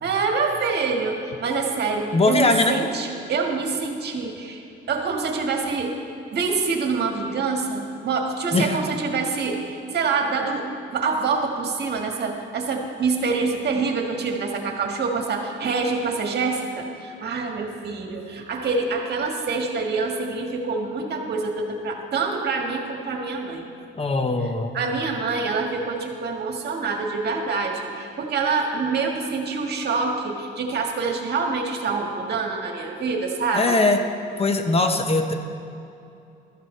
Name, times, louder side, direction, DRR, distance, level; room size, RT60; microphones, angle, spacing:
voice 1, 0.0-4.6 4.9-6.0 6.3-23.6 24.7-33.8, right 4 dB, 55° right, 2 dB, 1.7 m, -26 dB
voice 2, 2.1-2.8 8.5-8.8 23.9-24.8 33.5-34.0 34.4-35.3, left 2 dB, 30° left, 6 dB, 1.1 m, -20 dB
15.0 x 13.0 x 3.3 m, 2.7 s
cardioid pair, 90°, 20 cm